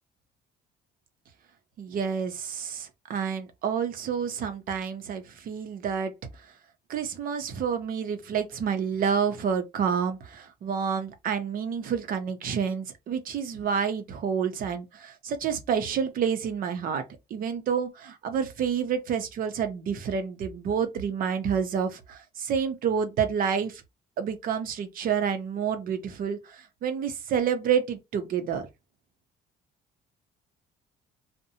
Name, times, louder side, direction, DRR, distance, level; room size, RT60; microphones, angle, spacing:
voice 1, 1.8-6.1 6.9-17.0 17.3-23.8 24.2-28.7, right 7 dB, 55° right, 0.6 m, -29 dB
2.6 x 2.1 x 2.7 m
cardioid pair, 110°, 17 cm